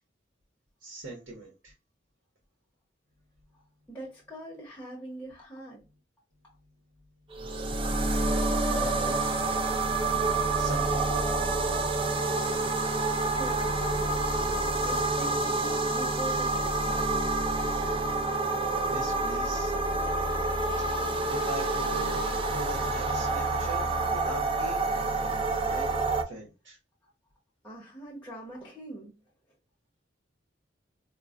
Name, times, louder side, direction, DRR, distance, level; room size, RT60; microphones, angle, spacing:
voice 1, 0.8-1.7 8.7-9.4 10.6-11.6 18.9-19.7 21.3-24.8 25.2-25.9 26.2-26.8, right 1 dB, 75° right, -1 dB, 1.0 m, -41 dB
voice 2, 3.9-5.8 13.3-14.1 14.8-17.2 27.6-29.1, right 1 dB, 10° left, -3 dB, 1.0 m, -42 dB
sound 1, 7.3-26.2, right 2 dB, 30° right, 0.4 m, -28 dB
4.5 x 2.2 x 2.5 m, 0.28 s
head